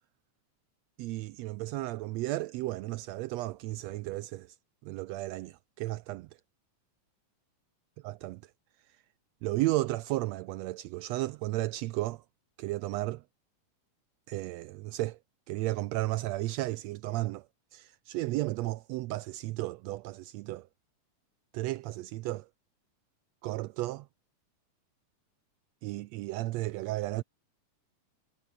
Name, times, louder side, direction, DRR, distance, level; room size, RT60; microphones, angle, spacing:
voice 1, 1.0-4.6 4.8-6.3 8.0-8.4 9.4-12.2 12.6-13.2 14.3-15.2 15.5-17.5 17.7-20.7 21.5-22.5 23.4-24.1 25.8-27.2, right 18 dB, 90° right, 1.5 m, -34 dB
omnidirectional pair, 3.6 m